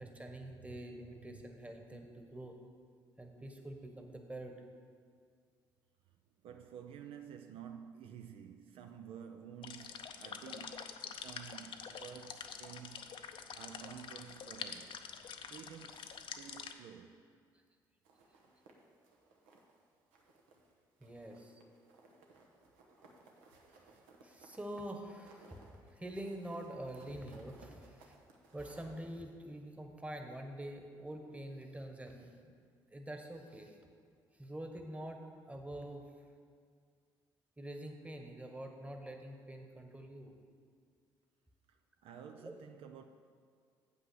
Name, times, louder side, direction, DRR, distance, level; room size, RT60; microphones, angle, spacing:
voice 1, 0.0-2.6 3.2-4.6 21.0-21.6 24.2-28.2 28.5-32.5 32.9-33.8 34.4-35.2 35.5-36.1 37.6-40.3 42.4-42.5, right 1 dB, 15° right, 1.2 m, -46 dB
voice 2, 6.4-15.1 15.4-17.2 41.7-43.0, right 8 dB, 65° right, 0.4 m, -51 dB
sound 1, 9.6-16.7, left 7 dB, 55° left, 0.6 m, -47 dB
sound 2, 18.0-19.8 20.1-20.7 21.0-29.0, right 3 dB, 85° right, 0.9 m, -62 dB
7.9 x 5.5 x 6.3 m
supercardioid pair, 60°, 10 cm